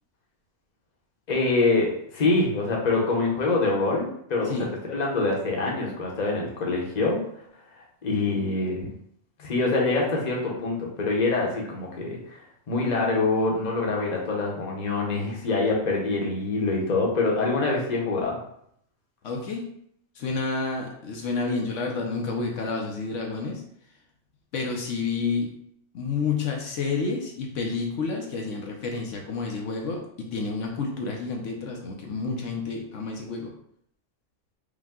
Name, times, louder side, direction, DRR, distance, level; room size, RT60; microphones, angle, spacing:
voice 1, 1.3-7.2 7.7-8.9 9.4-18.4, left 3 dB, 40° left, -1 dB, 0.9 m, -25 dB
voice 2, 19.2-19.7 20.2-23.6 24.5-25.5 25.9-30.0 30.3-33.5, left 4 dB, 75° left, 1 dB, 1.0 m, -29 dB
5.1 x 2.2 x 3.6 m, 0.69 s
omnidirectional pair, 1.3 m